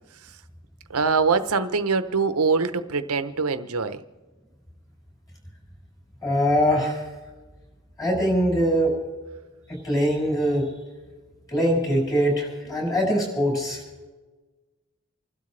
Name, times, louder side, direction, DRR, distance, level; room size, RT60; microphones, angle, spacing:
voice 1, 0.9-4.0, right 4 dB, 80° right, 11 dB, 0.9 m, -23 dB
voice 2, 6.2-7.0 8.0-8.9 9.7-10.7 11.5-13.8, equal, 15° left, -2 dB, 6.3 m, -22 dB
29.0 x 12.5 x 3.3 m, 1.3 s
head